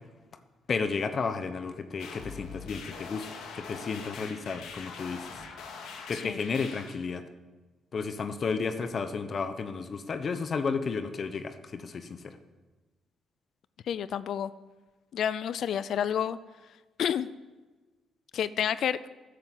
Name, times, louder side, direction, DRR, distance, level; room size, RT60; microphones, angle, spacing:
voice 1, 0.7-3.3 3.5-5.4 6.1-7.2 7.9-12.4, left 5 dB, 45° left, 10 dB, 1.0 m, -32 dB
sound 1, 2.0-7.0, left 5 dB, 85° left, 2.1 m, -43 dB
voice 2, 13.8-14.5 15.1-16.4 17.0-17.3 18.3-19.0, left 9 dB, 65° left, 16 dB, 0.5 m, -29 dB
13.5 x 10.0 x 8.0 m, 1.2 s
cardioid pair, 90°, 0 cm